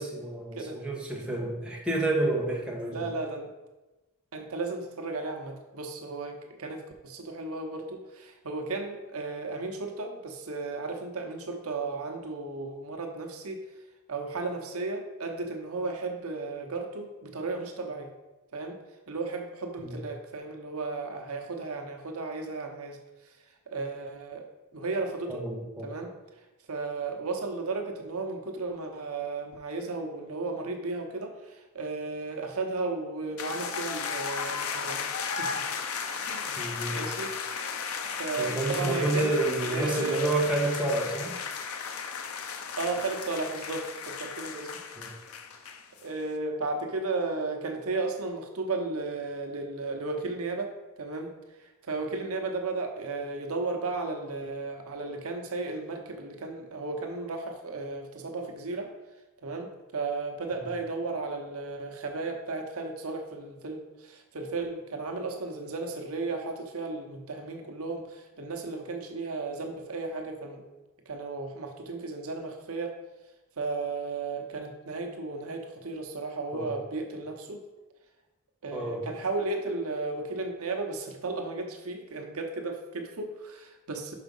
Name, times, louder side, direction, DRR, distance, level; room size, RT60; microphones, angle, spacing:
voice 1, 0.0-3.1 19.8-20.0 25.3-25.9 36.6-37.0 38.4-41.3 45.0-45.1 76.5-76.7 78.7-79.1, right 2 dB, 5° right, -3 dB, 1.3 m, -29 dB
voice 2, 2.9-3.5 4.3-13.6 14.1-18.1 18.5-18.8 19.1-23.0 23.7-24.5 24.7-25.5 25.8-26.1 26.7-35.6 36.2-36.5 36.9-37.3 38.2-39.4 39.7-40.3 42.8-44.7 46.0-51.3 51.6-58.9 59.4-70.6 71.1-72.9 73.6-77.6 78.6-84.1, right 3 dB, 75° right, 3 dB, 0.9 m, -34 dB
sound 1, 33.4-46.1, left 6 dB, 75° left, 0.6 m, -35 dB
6.0 x 5.0 x 5.4 m, 1.1 s
head